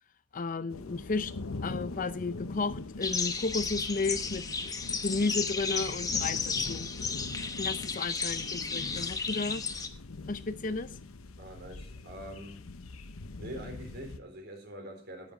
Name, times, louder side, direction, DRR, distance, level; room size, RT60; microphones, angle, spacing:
voice 1, 0.3-1.3 1.6-4.7 5.0-6.9 7.6-9.6 10.3-11.0, left 3 dB, 40° left, 0.5 m, -33 dB
sound 1, 0.7-14.2, left 3 dB, 85° left, 0.8 m, -42 dB
sound 2, 3.0-9.9, left 5 dB, 15° left, 1.0 m, -33 dB
voice 2, 11.4-12.7 13.4-15.3, equal, 50° right, 3.9 m, -44 dB
10.0 x 9.6 x 4.8 m
head